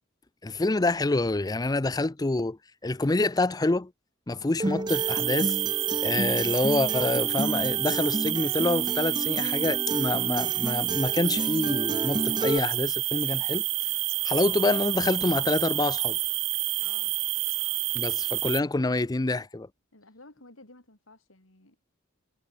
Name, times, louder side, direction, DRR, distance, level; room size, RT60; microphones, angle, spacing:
voice 1, 0.4-3.9 4.3-5.6 6.0-13.7 14.2-16.2 17.9-19.7, left 2 dB, 20° left, 0.5 m, -27 dB
Acoustic guitar, 4.6-12.6, right 1 dB, 20° right, 1.1 m, -32 dB
sound 1, 4.9-18.6, right 19 dB, 70° right, 1.2 m, -28 dB
voice 2, 16.8-17.1 19.9-21.8, left 2 dB, 85° left, 4.5 m, -53 dB
head